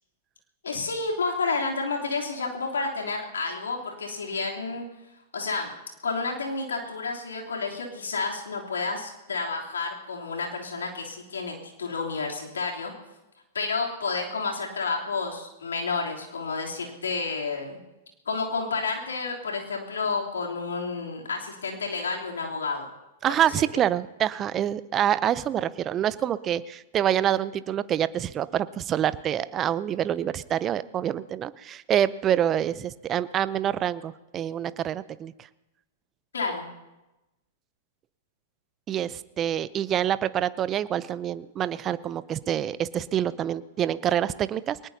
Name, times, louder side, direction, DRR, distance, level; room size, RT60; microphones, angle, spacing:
voice 1, 0.6-4.8 5.3-5.7 6.0-12.9 13.5-17.8 18.2-22.9 36.3-36.7, left 4 dB, 80° left, -1 dB, 3.3 m, -30 dB
voice 2, 23.2-35.3 38.9-44.9, right 10 dB, 30° right, 16 dB, 0.6 m, -26 dB
22.5 x 19.0 x 2.8 m, 1.0 s
hypercardioid pair, 105°, 0 cm